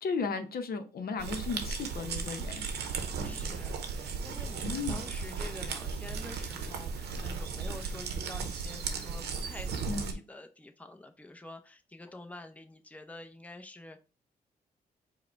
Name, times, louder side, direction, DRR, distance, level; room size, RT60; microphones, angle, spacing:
voice 1, 0.0-2.7 4.6-5.0 9.9-10.2, left 4 dB, 65° left, 0.7 m, -35 dB
sound 1, 1.2-10.1, right 5 dB, 90° right, 0.7 m, -36 dB
voice 2, 3.2-14.0, left 2 dB, 10° left, 0.7 m, -48 dB
4.8 x 2.2 x 4.5 m
cardioid pair, 65°, 17 cm